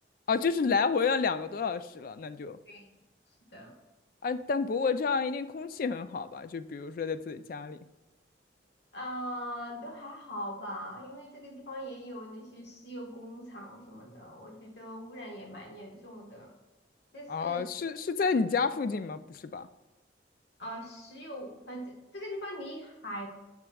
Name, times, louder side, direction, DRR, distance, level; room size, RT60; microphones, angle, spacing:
voice 1, 0.3-2.6 4.2-7.8 17.3-19.7, left 5 dB, 50° left, 12 dB, 0.3 m, -30 dB
voice 2, 8.9-16.5 17.1-17.6 20.6-23.3, equal, 65° left, 1 dB, 1.4 m, -41 dB
7.5 x 5.9 x 2.3 m, 1.1 s
head